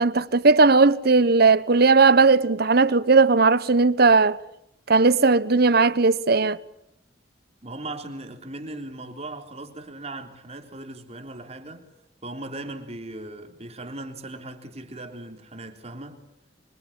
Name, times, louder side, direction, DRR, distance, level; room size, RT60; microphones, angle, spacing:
voice 1, 0.0-4.4 4.9-6.6, right 4 dB, 60° right, 1.1 m, -17 dB
voice 2, 7.6-11.9 12.2-16.2, right 2 dB, 35° right, 3.6 m, -38 dB
26.0 x 25.5 x 8.8 m
head